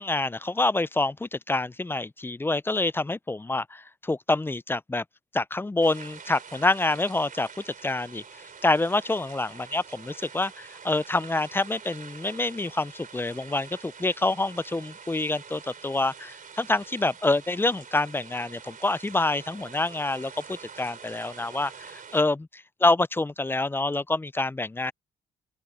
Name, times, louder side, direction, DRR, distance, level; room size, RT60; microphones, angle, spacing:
voice 1, 0.0-5.0 5.3-8.2 8.6-22.5 22.8-24.9, left 2 dB, 10° left, 0.4 m, -27 dB
sound 1, 5.8-22.2, right 6 dB, 45° right, 3.4 m, -46 dB
open air
cardioid pair, 90°, 20 cm